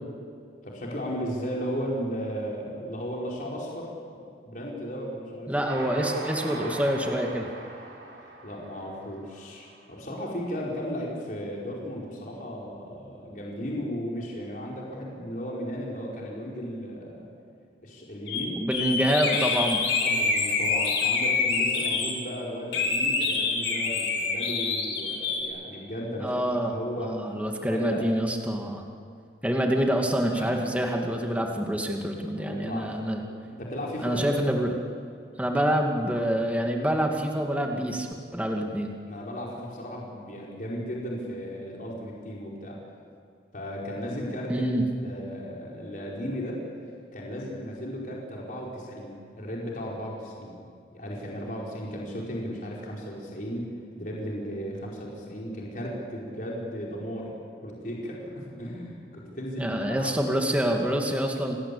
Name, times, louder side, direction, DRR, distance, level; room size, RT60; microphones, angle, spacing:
voice 1, 0.6-5.5 8.4-17.3 17.8-18.6 20.0-26.4 26.7-27.2 27.7-28.1 30.3-30.5 32.3-33.2 33.5-34.2 39.1-42.8 43.5-44.6 45.0-46.6 47.1-50.6 50.9-53.7 54.0-60.2, equal, 45° left, -3 dB, 5.0 m, -35 dB
voice 2, 5.5-7.5 18.6-19.8 26.2-26.7 27.0-28.8 29.4-33.2 34.0-34.8 35.4-38.1 38.3-38.9 44.5-44.8 59.6-61.6, equal, 10° right, 1 dB, 2.3 m, -26 dB
Train, 5.7-10.1, right 2 dB, 85° right, 6.3 m, -39 dB
sound 1, 18.3-18.4 18.7-22.1 22.7-25.4, left 4 dB, 70° left, 4.9 m, -26 dB
29.5 x 20.0 x 8.7 m, 2.4 s
head